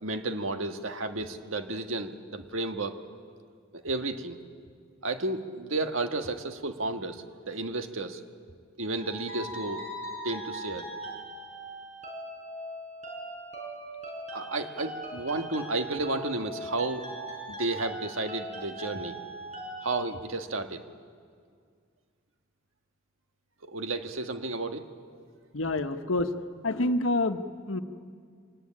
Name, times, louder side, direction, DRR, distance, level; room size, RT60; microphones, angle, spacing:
voice 1, 0.0-3.0 3.7-4.4 5.0-8.2 8.8-9.8 10.2-10.9 14.3-17.0 17.5-19.2 19.8-20.8 23.7-24.8, right 2 dB, 90° right, 6 dB, 1.6 m, -32 dB
sound 1, 9.0-19.9, right 1 dB, 35° right, 6.0 m, -40 dB
voice 2, 25.5-26.3 26.6-27.8, left 2 dB, 85° left, 8 dB, 1.2 m, -27 dB
25.5 x 18.0 x 9.9 m, 2.1 s
head